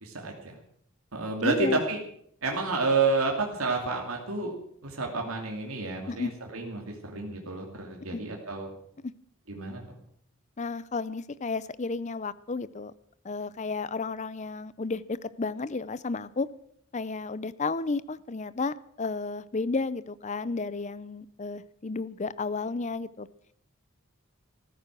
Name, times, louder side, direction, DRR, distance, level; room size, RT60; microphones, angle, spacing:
voice 1, 0.0-0.6 1.1-2.0 2.4-4.5 4.8-8.7 9.5-10.0, right 3 dB, 80° right, 1 dB, 2.6 m, -30 dB
voice 2, 1.4-1.8 6.1-6.3 8.1-8.2 9.0-9.1 10.6-12.9 13.2-16.5 16.9-23.3, left 3 dB, 35° left, 18 dB, 0.6 m, -32 dB
14.5 x 14.5 x 6.1 m, 0.68 s
head